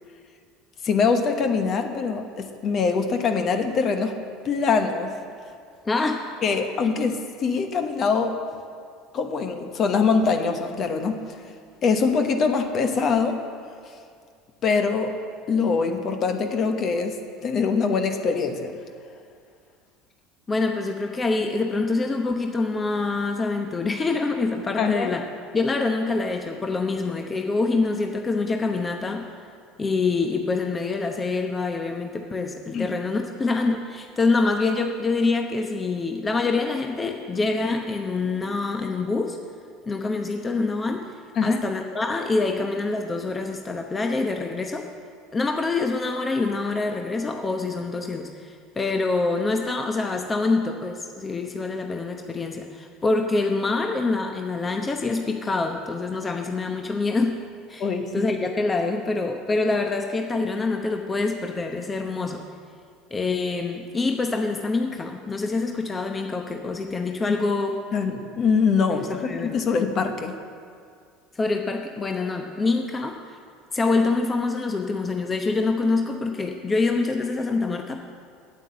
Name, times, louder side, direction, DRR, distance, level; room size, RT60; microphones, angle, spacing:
voice 1, 0.8-4.1 4.4-5.1 6.4-8.4 9.1-11.2 11.8-13.4 14.6-15.1 15.5-17.1 17.4-18.7 24.8-25.1 32.7-32.9 41.4-41.6 57.8-58.3 67.3-67.4 67.9-70.3, left 5 dB, 45° left, 6 dB, 1.1 m, -23 dB
voice 2, 5.8-6.3 20.5-25.2 25.5-29.3 29.8-39.4 39.9-41.1 41.4-44.9 45.3-57.4 57.7-62.4 63.1-67.8 68.9-69.6 71.3-73.4 73.7-78.0, left 3 dB, 25° left, 4 dB, 0.8 m, -25 dB
8.9 x 8.5 x 7.8 m, 2.2 s
hypercardioid pair, 80°, 0 cm